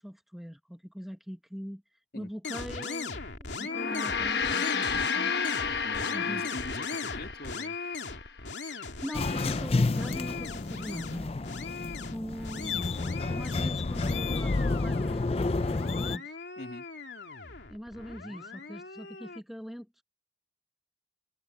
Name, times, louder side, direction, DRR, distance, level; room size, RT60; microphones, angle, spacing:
voice 1, 0.0-1.8 2.1-5.3 6.1-6.4 8.7-11.3 12.1-12.9 13.3-16.4 17.7-20.0, equal, ahead, 1.2 m, -42 dB
sound 1, 2.4-19.4, left 4 dB, 90° left, 2.8 m, -39 dB
Gong, 3.6-8.3, left 6 dB, 70° left, 1.1 m, -32 dB
voice 2, 5.8-7.8 16.6-16.9, left 1 dB, 55° left, 2.6 m, -42 dB
sound 2, 9.1-16.2, left 3 dB, 35° left, 0.4 m, -30 dB
head